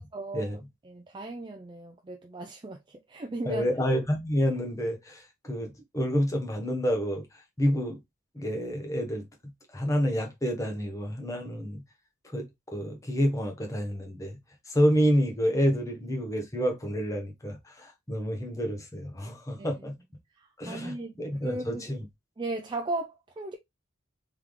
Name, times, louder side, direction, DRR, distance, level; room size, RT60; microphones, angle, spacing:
voice 1, 0.1-0.5 0.8-3.7 19.6-19.7 20.4-21.2 21.4-21.8 22.4-23.5, right 2 dB, 25° right, 0.4 m, -36 dB
voice 2, 3.4-7.3 7.6-8.0 8.3-11.8 12.2-14.4 14.7-19.9 20.6-22.0, equal, 15° left, 1.1 m, -29 dB
3.6 x 3.5 x 3.1 m
head